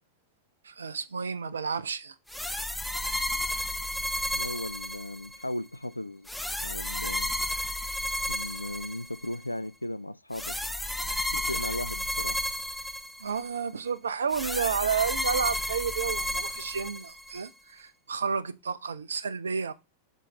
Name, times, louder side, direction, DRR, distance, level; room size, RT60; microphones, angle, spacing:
voice 1, 0.6-2.1 13.2-19.7, right 6 dB, 70° right, 0.6 m, -31 dB
sound 1, 2.3-5.4 6.3-9.4 10.3-13.5 14.3-17.4, left 1 dB, ahead, 0.5 m, -32 dB
voice 2, 4.3-6.3 6.6-7.3 8.3-10.6 11.3-12.4, left 1 dB, 85° left, 0.4 m, -36 dB
6.4 x 3.8 x 5.4 m
figure-of-eight pair, 90°, 0 cm